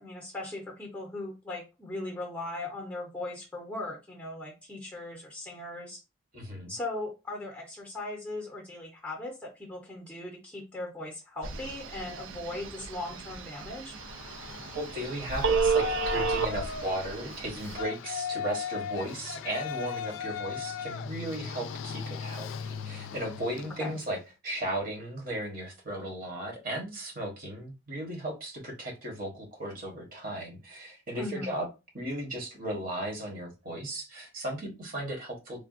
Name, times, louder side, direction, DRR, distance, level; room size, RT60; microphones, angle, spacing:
voice 1, 0.0-6.0 6.7-13.9 23.8-23.9 31.2-31.5, left 2 dB, 5° left, 1 dB, 0.6 m, -38 dB
voice 2, 6.3-6.7 14.7-24.2 24.4-31.7 31.9-35.6, right 1 dB, 45° right, 1 dB, 1.1 m, -36 dB
Telephone, 11.4-17.8, right 5 dB, 80° right, 0.4 m, -32 dB
Yell, 13.9-24.1, left 7 dB, 75° left, 0.3 m, -38 dB
3.3 x 2.2 x 2.4 m, 0.26 s
head